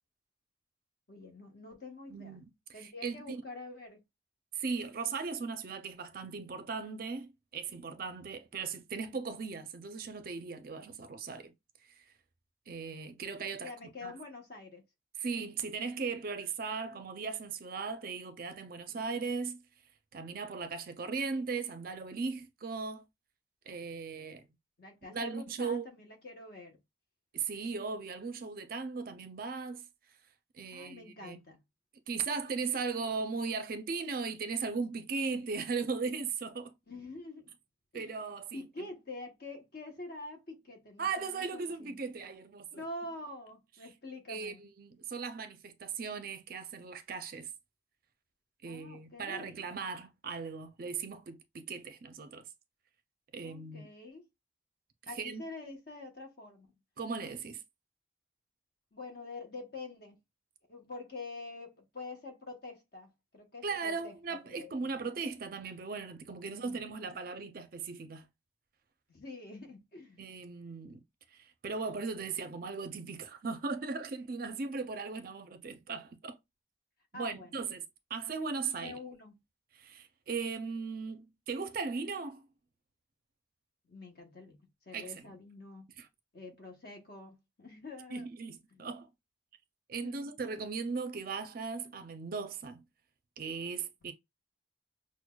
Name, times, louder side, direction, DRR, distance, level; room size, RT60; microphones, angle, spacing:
voice 1, 1.1-2.4 2.7-4.0 13.6-14.8 18.9-19.2 24.8-26.8 30.7-31.6 36.9-37.6 37.9-38.1 38.5-41.9 42.7-44.6 48.6-49.7 53.4-54.2 55.1-56.7 58.9-60.2 60.7-65.1 66.4-66.8 67.1-67.2 69.1-70.2 77.1-77.7 78.8-79.4 83.9-84.6 84.9-85.9 86.3-88.3 88.7-88.9 90.0-90.3 94.0-94.1, left 2 dB, 50° left, 1.0 m, -46 dB
voice 2, 2.1-3.4 4.6-11.5 12.0-12.1 12.7-13.7 14.0-14.1 15.2-19.6 20.1-23.0 23.7-24.4 25.1-25.9 27.3-29.8 30.5-31.4 32.1-36.7 37.9-38.6 41.0-42.8 44.3-47.5 48.6-52.4 53.3-53.9 55.2-55.4 57.0-57.6 63.6-68.3 70.2-71.0 71.3-76.4 77.1-77.8 78.1-79.0 79.7-82.4 84.9-85.1 86.0-86.1 88.1-89.1 89.9-92.8 93.4-94.1, right 4 dB, 45° right, 0.4 m, -38 dB
6.0 x 2.1 x 2.2 m
head